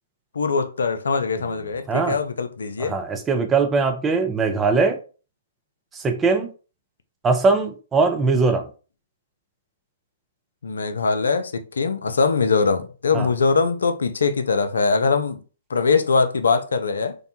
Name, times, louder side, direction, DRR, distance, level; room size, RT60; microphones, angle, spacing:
voice 1, 0.3-2.9 10.6-15.4 15.7-17.2, left 4 dB, 75° left, 0.4 m, -22 dB
voice 2, 1.9-2.2 2.8-5.0 6.0-6.5 7.2-8.7 13.1-13.3, right 4 dB, 15° right, 0.5 m, -20 dB
2.7 x 2.1 x 2.6 m
figure-of-eight pair, 120°, 0 cm